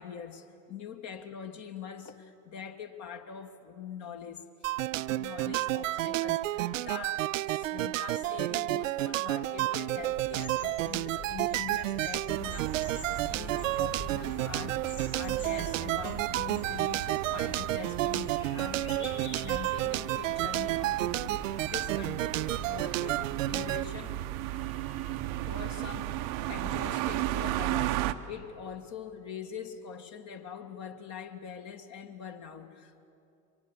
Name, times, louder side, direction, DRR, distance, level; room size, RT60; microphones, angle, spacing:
voice 1, 0.0-4.7 5.2-14.8 15.1-21.4 21.7-23.2 23.5-24.2 24.6-33.0, left 7 dB, 40° left, 5 dB, 1.6 m, -43 dB
sound 1, 4.6-23.8, right 16 dB, 65° right, 0.5 m, -31 dB
sound 2, 10.0-23.9, left 2 dB, 80° left, 6.2 m, -47 dB
sound 3, 12.3-28.1, right 14 dB, 45° right, 0.9 m, -36 dB
23.5 x 19.5 x 8.1 m, 2.6 s
figure-of-eight pair, 75°, 42 cm